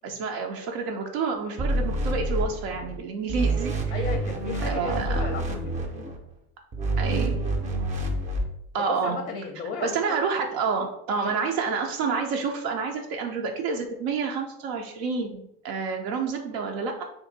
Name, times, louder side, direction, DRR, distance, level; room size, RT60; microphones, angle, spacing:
voice 1, 0.0-3.7 4.6-5.2 7.0-7.4 8.7-9.2 9.8-17.0, right 5 dB, 85° right, 2 dB, 0.5 m, -29 dB
sound 1, 1.6-3.0 3.3-6.2 6.7-8.4, right 2 dB, 25° right, 0.5 m, -27 dB
voice 2, 3.9-6.1 8.8-10.2 11.3-11.4, left 5 dB, 30° left, 3 dB, 0.4 m, -35 dB
2.6 x 2.6 x 3.8 m, 0.77 s
supercardioid pair, 115°, 31 cm